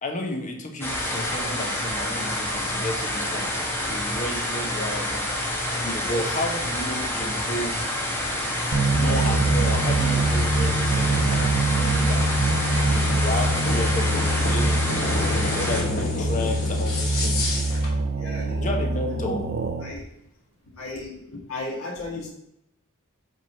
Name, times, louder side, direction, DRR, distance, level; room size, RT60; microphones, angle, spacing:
voice 1, 0.0-5.3 5.8-7.8 8.9-12.3 12.9-15.0 15.2-17.5 18.6-19.4, left 1 dB, 35° left, 2 dB, 1.1 m, -32 dB
sound 1, 0.8-15.8, left 1 dB, 10° left, 1.4 m, -28 dB
voice 2, 6.0-6.4 18.1-18.7 19.2-19.3 19.8-20.0 20.8-22.3, left 2 dB, 70° left, -4 dB, 1.8 m, -35 dB
sound 2, 7.1-17.9, left 2 dB, 85° left, 2.6 m, -34 dB
sound 3, 8.7-20.0, right 2 dB, 45° right, 0.6 m, -24 dB
6.2 x 3.8 x 5.8 m, 0.82 s
head